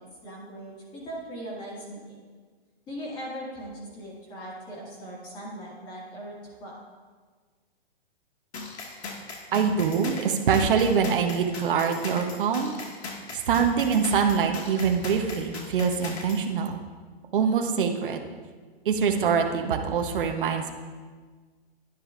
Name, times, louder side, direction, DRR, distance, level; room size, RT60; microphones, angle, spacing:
voice 1, 0.0-2.2 2.9-6.8, equal, 15° left, -5 dB, 2.0 m, -39 dB
sound 1, 8.5-16.4, left 3 dB, 90° left, 1.9 m, -39 dB
voice 2, 9.5-12.7 13.3-16.8 17.3-18.2 18.8-20.7, right 6 dB, 55° right, 4 dB, 0.9 m, -24 dB
10.5 x 10.0 x 2.5 m, 1.5 s
hypercardioid pair, 165°, 32 cm